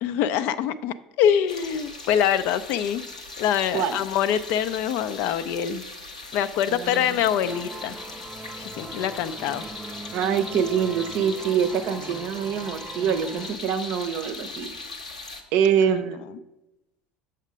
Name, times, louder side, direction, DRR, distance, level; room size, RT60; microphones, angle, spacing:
voice 1, 0.0-3.1 3.4-5.8 6.3-8.0 8.6-9.7, left 9 dB, 55° left, 13 dB, 0.4 m, -24 dB
sound 1, 1.5-15.4, left 3 dB, 85° left, 0.8 m, -39 dB
voice 2, 6.7-7.0 10.1-14.7 15.5-16.2, right 8 dB, 50° right, 10 dB, 0.6 m, -24 dB
sound 2, 6.9-13.6, right 2 dB, 10° right, 0.4 m, -41 dB
7.2 x 5.6 x 5.1 m, 0.99 s
figure-of-eight pair, 65°, 4 cm